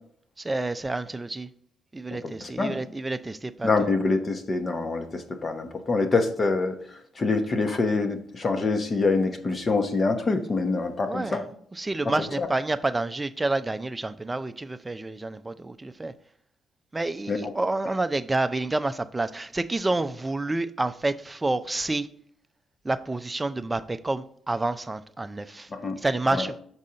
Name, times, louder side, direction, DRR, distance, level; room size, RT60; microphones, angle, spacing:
voice 1, 0.4-1.5 1.9-3.9 11.0-11.4 11.7-16.1 16.9-22.1 22.8-25.7 26.0-26.6, right 2 dB, 15° right, 11 dB, 0.4 m, -29 dB
voice 2, 3.6-6.8 7.2-11.4 12.4-12.5 17.3-17.5 25.7-26.0 26.3-26.5, left 3 dB, 35° left, 7 dB, 0.9 m, -25 dB
6.2 x 4.2 x 3.9 m, 0.62 s
cardioid pair, 90°, 0 cm